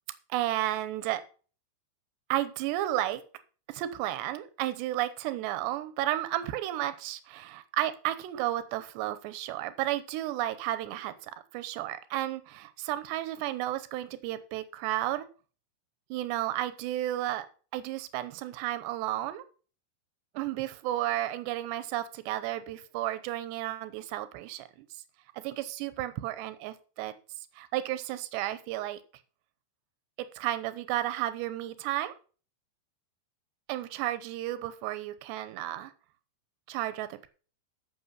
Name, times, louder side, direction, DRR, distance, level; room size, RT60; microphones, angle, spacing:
voice 1, 0.3-1.2 2.3-3.2 3.7-15.3 16.1-17.5 17.7-19.4 20.4-24.7 25.4-27.1 27.6-29.0 30.4-32.1 33.7-35.9 36.7-37.3, right 14 dB, 75° right, 2.6 m, -32 dB
14.0 x 6.2 x 5.4 m
omnidirectional pair, 5.9 m